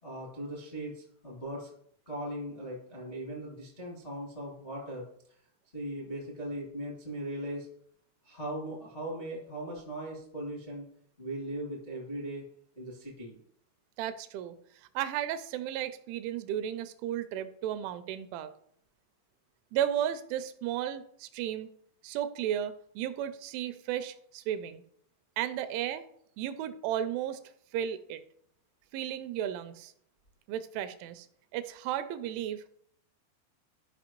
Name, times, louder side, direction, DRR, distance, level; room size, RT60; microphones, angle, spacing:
voice 1, 0.0-1.7 2.0-5.0 5.7-7.7 8.2-10.9 11.2-12.4 12.7-13.4, right 1 dB, 45° left, -4 dB, 0.7 m, -39 dB
voice 2, 14.0-14.6 15.0-18.5 19.7-21.7 22.0-24.8 25.4-26.1 26.4-27.4 27.7-28.2 28.9-29.9 30.5-31.3 31.5-32.7, right 10 dB, 85° right, 11 dB, 2.9 m, -34 dB
13.0 x 5.5 x 3.0 m, 0.67 s
omnidirectional pair, 5.6 m